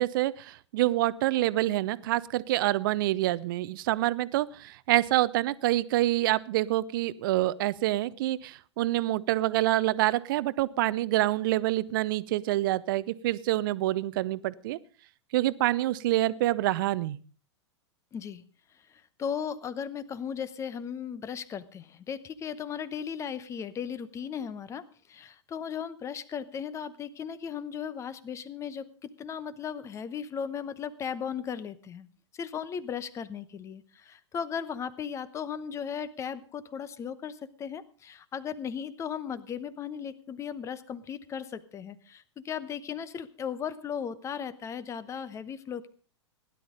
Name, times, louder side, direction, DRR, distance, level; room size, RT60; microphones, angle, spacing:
voice 1, 0.0-14.8 15.3-17.2, right 16 dB, 45° right, 18 dB, 0.7 m, -27 dB
voice 2, 18.1-18.4 18.9-32.1 32.3-45.9, left 7 dB, 20° left, 17 dB, 0.9 m, -36 dB
16.5 x 11.0 x 5.1 m, 0.40 s
figure-of-eight pair, 100°, 15 cm